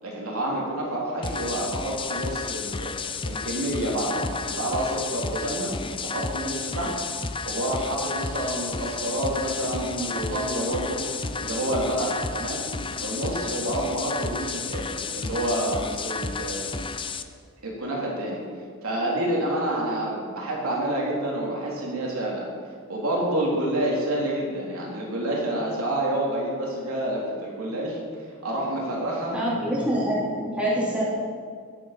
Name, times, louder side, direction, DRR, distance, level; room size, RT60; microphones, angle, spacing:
voice 1, 0.0-2.9 3.3-5.7 6.0-6.9 7.5-11.0 11.4-12.6 13.0-16.7 17.6-18.4 18.8-22.5 22.9-28.0 28.4-29.4, right 1 dB, 70° right, -3 dB, 3.5 m, -28 dB
sound 1, 1.2-17.2, left 4 dB, 25° left, 0.6 m, -32 dB
sound 2, 9.5-13.4 16.9-17.3 18.4-18.5, equal, 40° right, 2.0 m, -43 dB
voice 2, 29.3-31.1, equal, 5° right, -8 dB, 4.1 m, -25 dB
20.0 x 7.7 x 6.0 m, 2.1 s
head